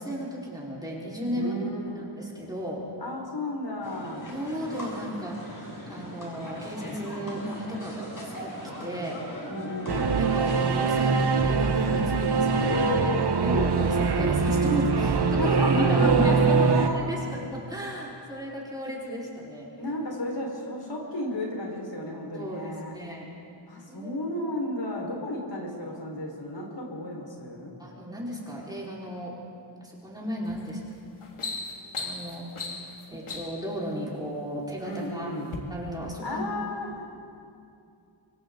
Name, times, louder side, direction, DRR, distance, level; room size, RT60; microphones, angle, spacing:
voice 1, 0.0-1.7 1.9-2.8 4.3-5.4 5.9-8.5 8.8-9.2 10.1-13.0 13.4-19.7 22.3-23.3 23.9-24.2 27.8-29.3 29.8-30.8 32.0-32.5 33.1-35.3 35.7-36.4, equal, 10° right, -5 dB, 4.9 m, -34 dB
voice 2, 1.4-2.1 3.0-4.3 9.5-10.2 12.6-13.4 15.4-16.4 16.7-16.9 19.8-22.9 23.7-27.7 34.8-35.5 36.2-37.2, left 1 dB, 60° left, -1 dB, 5.2 m, -33 dB
sound 1, 3.8-11.0, equal, 40° left, 6.1 m, -40 dB
Singing / Musical instrument, 9.9-16.9, right 4 dB, 50° right, 1.2 m, -23 dB
sound 2, 30.5-30.7 31.1-33.7 34.5-35.0 35.4-35.6, left 3 dB, 85° left, 2.5 m, -37 dB
27.5 x 24.5 x 4.1 m, 2.5 s
wide cardioid pair, 120°, 49 cm